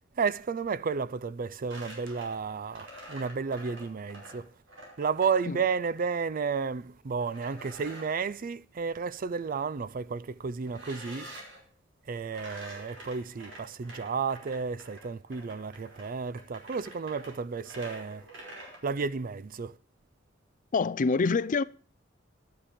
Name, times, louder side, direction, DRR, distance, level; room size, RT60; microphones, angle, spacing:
voice 1, 0.2-4.5 5.0-11.4 12.1-18.2 18.8-19.8, right 5 dB, 45° right, 0.4 m, -32 dB
sound 1, 1.7-6.0 7.2-8.3 10.7-11.6 12.3-18.8, right 1 dB, 70° right, 5.1 m, -47 dB
voice 2, 20.7-21.6, left 4 dB, 40° left, 0.4 m, -25 dB
12.0 x 10.0 x 5.0 m
head